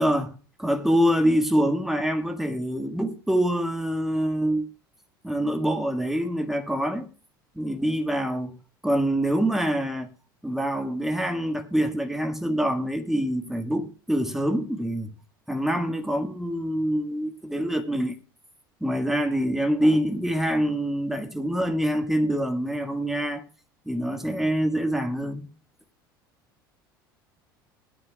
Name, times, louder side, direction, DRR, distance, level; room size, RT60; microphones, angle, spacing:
voice 1, 0.0-4.7 5.2-7.1 7.5-8.6 8.8-10.1 10.4-15.1 15.5-18.2 18.8-23.4 23.8-25.5, equal, 5° right, 1.7 m, -25 dB
20.0 x 9.5 x 2.3 m
figure-of-eight pair, 70°, 12 cm